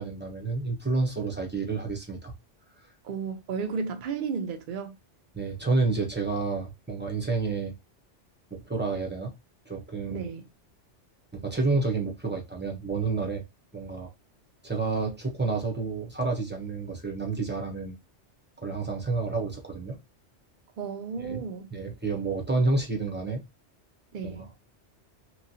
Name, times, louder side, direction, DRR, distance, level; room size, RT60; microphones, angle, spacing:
voice 1, 0.0-2.3 5.3-7.7 8.5-9.3 9.7-10.3 11.3-13.4 13.7-14.1 14.6-18.0 18.6-20.0 21.2-21.4 21.7-23.4 24.2-24.4, right 3 dB, 10° right, 0.5 m, -29 dB
voice 2, 3.0-5.0 10.1-10.5 20.8-21.7 24.1-24.5, right 5 dB, 55° right, 0.6 m, -33 dB
3.0 x 2.2 x 2.7 m
omnidirectional pair, 1.2 m